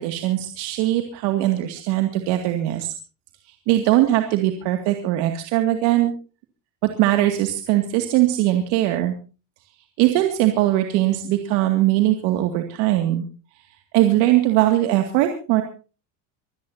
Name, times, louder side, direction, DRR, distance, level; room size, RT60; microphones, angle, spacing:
voice 1, 0.0-2.9 3.5-6.1 7.0-9.1 10.0-13.3 13.9-15.6, right 14 dB, 75° right, 5 dB, 2.3 m, -20 dB
25.0 x 16.5 x 2.8 m, 0.35 s
cardioid pair, 155°, 41 cm